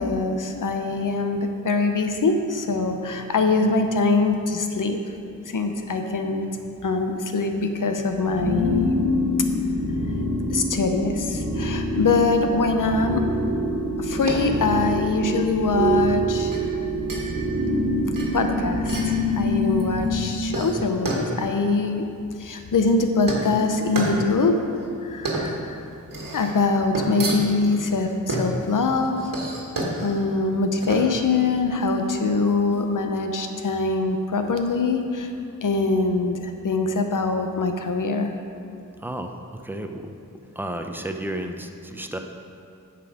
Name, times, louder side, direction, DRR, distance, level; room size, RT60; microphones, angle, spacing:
voice 1, 0.0-5.0 5.5-6.5 6.8-8.9 10.5-13.2 14.0-16.5 18.3-22.1 22.4-24.7 25.0-25.9 26.3-29.1 30.0-35.3 35.6-38.3, left 3 dB, 70° left, 5 dB, 0.8 m, -23 dB
sound 1, 8.2-20.2, equal, 60° right, 1.4 m, -25 dB
sound 2, 14.0-32.8, right 1 dB, 80° right, 1.5 m, -32 dB
voice 2, 39.0-39.4 39.6-40.1 40.5-42.2, right 1 dB, 5° right, 4 dB, 0.6 m, -32 dB
9.4 x 6.0 x 4.9 m, 2.5 s
wide cardioid pair, 95°, 33 cm